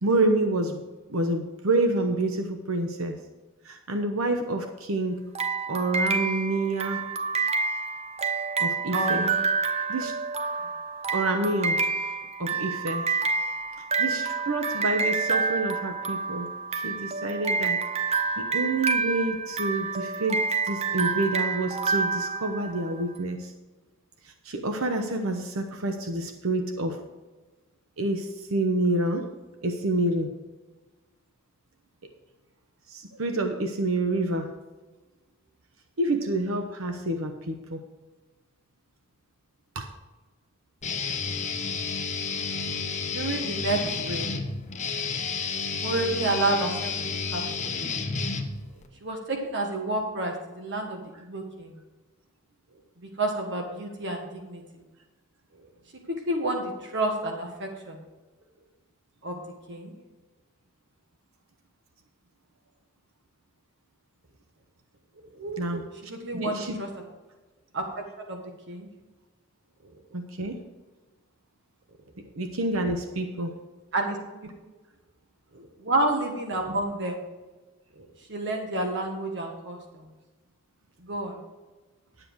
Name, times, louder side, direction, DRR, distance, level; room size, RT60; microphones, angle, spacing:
voice 1, 0.0-0.8 1.1-3.2 3.6-5.2 5.7-7.0 8.6-9.3 9.9-10.1 11.1-11.8 12.4-13.1 14.0-17.8 18.1-23.5 24.4-27.0 28.0-29.2 29.6-30.3 32.9-34.5 36.0-37.8 39.7-39.8 65.6-65.8 66.3-66.8 70.1-70.6 72.4-73.5, right 2 dB, 75° right, 5 dB, 1.0 m, -28 dB
sound 1, 5.3-23.0, right 4 dB, 30° right, 0.6 m, -28 dB
voice 2, 8.9-9.4 42.8-44.3 45.8-46.9 47.3-47.7 49.0-51.7 53.0-54.6 56.3-58.0 59.2-59.4 59.7-59.9 65.4-65.8 66.1-66.9 67.7-67.8 68.2-68.4 68.7-68.9 73.9-74.2 74.4-74.5 75.5-77.2 78.0-79.8 81.0-81.4, right 2 dB, 60° right, 2 dB, 1.5 m, -30 dB
Guitar, 40.8-48.9, left 5 dB, 35° left, 1.1 m, -31 dB
11.0 x 7.7 x 4.7 m, 1.2 s
head